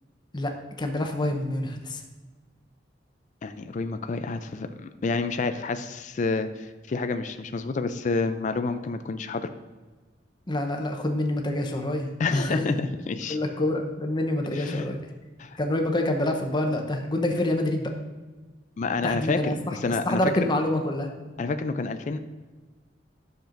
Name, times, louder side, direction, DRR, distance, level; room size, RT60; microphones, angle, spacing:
voice 1, 0.3-2.0 10.5-12.6 13.3-15.0 15.6-17.9 19.0-19.8 20.0-21.1, left 1 dB, 25° left, 3 dB, 0.8 m, -27 dB
voice 2, 3.4-9.5 12.2-12.8 13.1-13.4 14.5-14.9 15.4-15.6 18.8-20.5 21.4-22.2, left 3 dB, 40° left, 9 dB, 0.4 m, -29 dB
10.0 x 6.7 x 2.6 m, 1.3 s
head